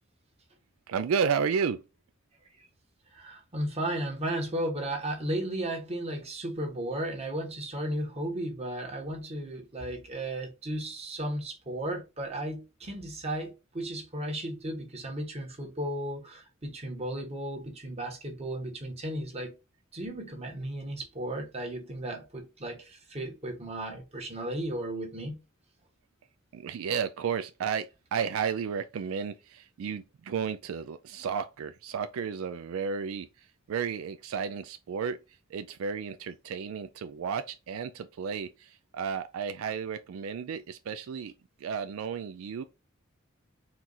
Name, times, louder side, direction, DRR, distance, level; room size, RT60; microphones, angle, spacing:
voice 1, 0.9-1.8 26.5-35.2 35.5-41.3 41.6-42.6, right 6 dB, 75° right, 0.3 m, -32 dB
voice 2, 3.1-19.6 19.9-25.3, right 1 dB, 30° right, 1.2 m, -35 dB
4.4 x 2.4 x 3.9 m
head